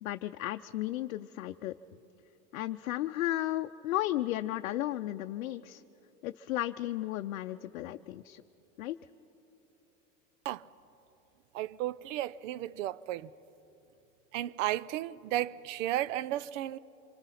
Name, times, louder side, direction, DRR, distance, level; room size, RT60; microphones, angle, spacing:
voice 1, 0.0-1.7 2.5-5.8 6.2-8.4 8.8-9.0, left 14 dB, 85° left, 0.6 m, -34 dB
voice 2, 11.5-13.3 14.3-16.8, right 14 dB, 70° right, 0.7 m, -34 dB
26.5 x 24.5 x 5.8 m
hypercardioid pair, 100°, 40 cm